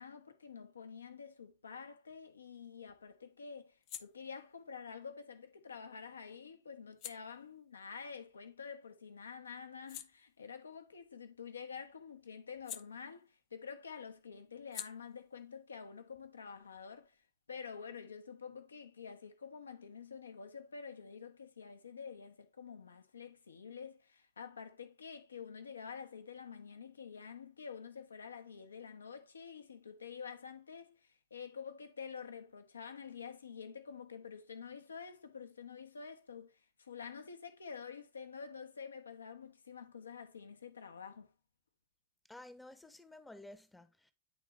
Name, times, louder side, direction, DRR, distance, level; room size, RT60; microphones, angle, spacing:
voice 1, 0.0-17.2 17.5-41.3, left 6 dB, 75° left, 0.8 m, -48 dB
sound 1, 2.1-9.0 9.4-13.6 13.9-17.3, left 12 dB, 40° left, 0.6 m, -54 dB
voice 2, 42.3-44.1, left 1 dB, 5° left, 0.7 m, -53 dB
9.7 x 3.8 x 3.2 m
figure-of-eight pair, 90°, 0 cm